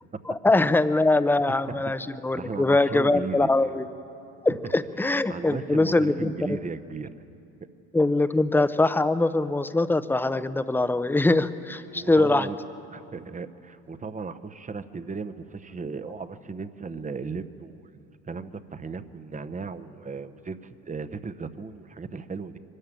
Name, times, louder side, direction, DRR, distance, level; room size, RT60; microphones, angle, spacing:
voice 1, 0.3-3.9 4.4-6.6 7.9-12.5, left 2 dB, 5° left, 12 dB, 0.6 m, -23 dB
voice 2, 2.3-3.5 5.3-7.1 11.9-12.6 12.9-22.6, right 4 dB, 20° right, 11 dB, 0.9 m, -36 dB
22.5 x 13.0 x 9.0 m, 2.7 s
supercardioid pair, 90°, 36 cm